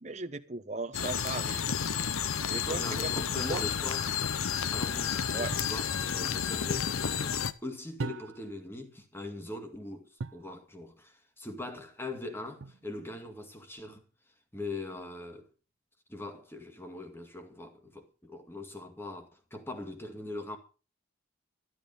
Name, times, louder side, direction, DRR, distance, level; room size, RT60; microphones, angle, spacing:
voice 1, 0.0-1.6 2.5-3.7 5.3-5.5, right 3 dB, 35° right, 0.9 m, -37 dB
sound 1, 0.9-7.5, left 7 dB, 85° left, 0.8 m, -31 dB
voice 2, 2.7-4.0 4.7-14.0 14.5-15.5 16.1-20.6, left 2 dB, 10° left, 2.1 m, -41 dB
sound 2, 5.5-5.8 8.0-8.6 10.2-10.5 12.6-13.1, right 3 dB, 65° right, 0.6 m, -39 dB
12.5 x 12.0 x 5.4 m
head